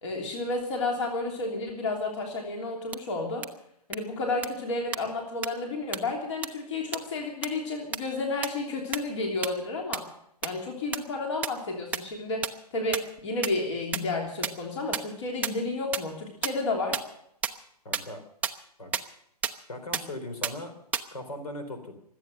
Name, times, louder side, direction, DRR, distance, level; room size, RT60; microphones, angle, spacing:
voice 1, 0.0-3.5 3.9-10.0 10.4-17.0, left 3 dB, 45° left, 2 dB, 3.2 m, -31 dB
sound 1, 2.9-3.0 3.4-3.5 3.9-4.0 4.4-4.5 4.9-5.0 5.4-5.5 5.9-6.0 6.4-6.5 6.9-7.0 7.4-7.5 7.9-8.0 8.4-8.5 8.9-9.0 9.4-9.5 9.9-10.0 10.4-10.5 10.9-11.0 11.4-11.5 11.9-12.0 12.4-12.5 12.9-13.0 13.4-13.5 13.9-14.0 14.4-14.5 14.9-15.0 15.4-15.5 15.9-16.0 16.4-16.5 16.9-17.0 17.4-17.5 17.9-18.0 18.4-18.5 18.9-19.0 19.4-19.5 19.9-20.0 20.4-20.5 20.9-21.0, right 7 dB, 5° right, 0.5 m, -27 dB
voice 2, 17.8-18.2 18.8-18.9 19.7-20.7 21.1-21.9, left 1 dB, 65° left, 8 dB, 3.6 m, -38 dB
24.5 x 8.5 x 6.7 m, 0.74 s
figure-of-eight pair, 125°, 21 cm